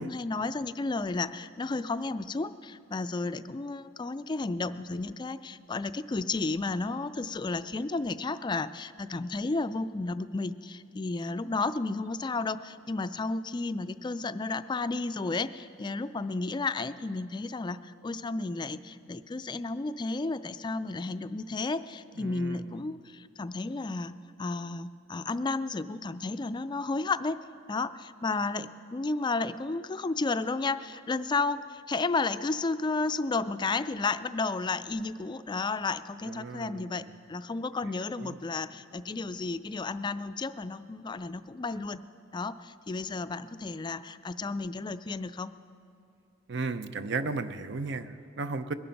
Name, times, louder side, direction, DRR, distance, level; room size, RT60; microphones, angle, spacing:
voice 1, 0.0-24.1 24.4-27.4 27.7-37.0 37.3-42.0 42.3-45.5, left 3 dB, 25° left, 12 dB, 0.3 m, -32 dB
voice 2, 22.2-22.7 36.3-37.2 38.2-38.4 46.5-48.7, right 3 dB, 65° right, 11 dB, 0.6 m, -35 dB
21.0 x 9.2 x 5.8 m, 2.5 s
head